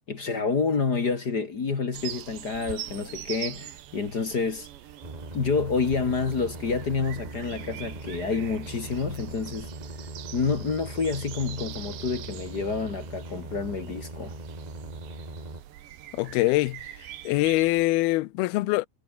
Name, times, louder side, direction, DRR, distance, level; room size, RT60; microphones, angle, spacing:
voice 1, 0.1-4.7 5.3-9.7 10.3-14.3, left 4 dB, 45° left, 1.3 m, -28 dB
sound 1, 1.9-17.9, right 12 dB, 70° right, 3.9 m, -43 dB
sound 2, 5.0-15.6, right 2 dB, 10° right, 2.8 m, -40 dB
voice 2, 16.1-16.8 17.3-18.9, left 19 dB, 80° left, 2.3 m, -23 dB
omnidirectional pair, 5.4 m